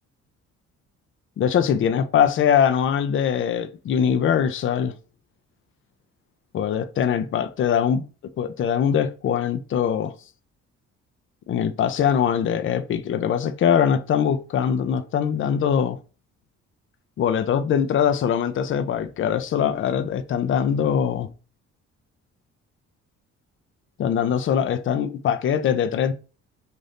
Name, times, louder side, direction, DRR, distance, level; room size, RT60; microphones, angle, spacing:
voice 1, 1.4-4.9 6.5-8.0 8.4-10.1 11.5-16.0 17.2-21.3 24.0-26.1, left 8 dB, 45° left, 0.4 m, -22 dB
2.6 x 2.5 x 3.3 m
cardioid pair, 90°, 30 cm